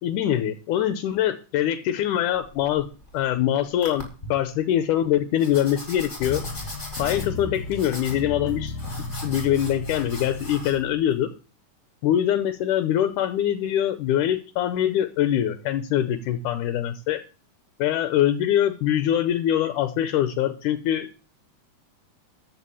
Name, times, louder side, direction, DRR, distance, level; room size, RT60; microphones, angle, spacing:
voice 1, 0.0-2.9 3.1-6.5 7.0-8.8 9.2-11.3 12.0-17.2 17.8-21.1, left 11 dB, 80° left, 11 dB, 2.3 m, -23 dB
sound 1, 2.3-3.3 3.8-4.3 5.4-10.7, left 1 dB, 15° left, 3.9 m, -39 dB
sound 2, 6.2-11.2, left 2 dB, 60° left, 1.7 m, -35 dB
13.5 x 5.0 x 8.4 m, 0.34 s
omnidirectional pair, 3.6 m